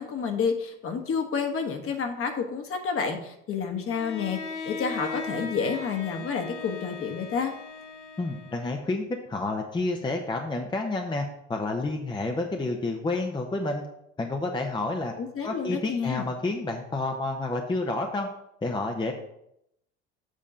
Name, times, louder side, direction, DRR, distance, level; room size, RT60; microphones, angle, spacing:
voice 1, 0.0-7.5 15.2-16.2, left 6 dB, 40° left, 5 dB, 1.3 m, -29 dB
Bowed string instrument, 3.9-8.9, left 4 dB, 90° left, 0.8 m, -38 dB
voice 2, 8.2-9.0 9.3-11.2 11.5-13.8 14.2-15.1 15.4-18.3 18.6-19.1, left 2 dB, 15° left, 3 dB, 0.8 m, -29 dB
7.5 x 3.7 x 5.6 m, 0.79 s
hypercardioid pair, 75°, 35 cm